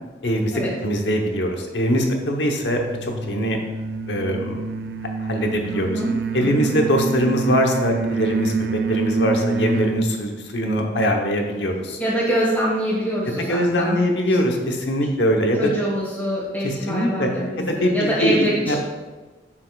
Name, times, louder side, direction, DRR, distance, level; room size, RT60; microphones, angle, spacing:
voice 1, 0.2-0.5 0.8-3.6 4.1-4.6 5.2-6.0 6.3-8.5 8.9-12.0 13.5-15.6 16.6-17.3 17.7-18.8, equal, 75° left, 2 dB, 1.0 m, -22 dB
sound 1, 2.7-10.0, right 4 dB, 60° right, 0.4 m, -27 dB
voice 2, 5.7-6.1 6.4-6.8 12.0-14.0 15.6-18.8, right 1 dB, 10° left, -9 dB, 1.4 m, -24 dB
7.3 x 6.8 x 2.4 m, 1.2 s
head